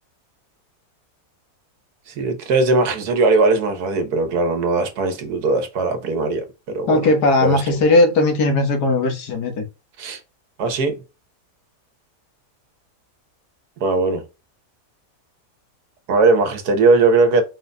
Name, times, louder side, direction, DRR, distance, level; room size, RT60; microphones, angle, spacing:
voice 1, 2.1-6.4 6.7-7.1 7.4-7.8 10.0-10.2 10.6-11.0 13.8-14.2 16.1-17.4, right 3 dB, 75° right, 1.5 m, -19 dB
voice 2, 6.9-9.6, left 2 dB, 85° left, 1.6 m, -17 dB
4.9 x 3.9 x 2.2 m
omnidirectional pair, 1.7 m